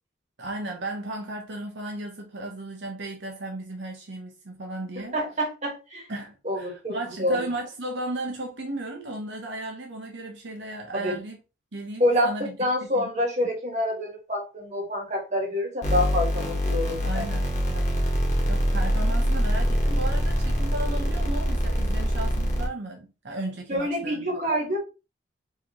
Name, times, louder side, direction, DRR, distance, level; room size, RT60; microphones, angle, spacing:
voice 1, 0.4-5.2 6.1-11.4 11.7-12.5 12.8-13.1 17.0-17.5 18.5-24.5, right 1 dB, 70° right, 0.8 m, -35 dB
voice 2, 5.1-6.1 6.4-7.5 10.9-11.2 12.0-12.3 12.6-17.2 17.7-18.0 23.7-24.8, left 1 dB, 35° right, 1.4 m, -27 dB
sound 1, 15.8-22.7, equal, 35° left, 1.3 m, -24 dB
4.7 x 3.1 x 2.9 m
head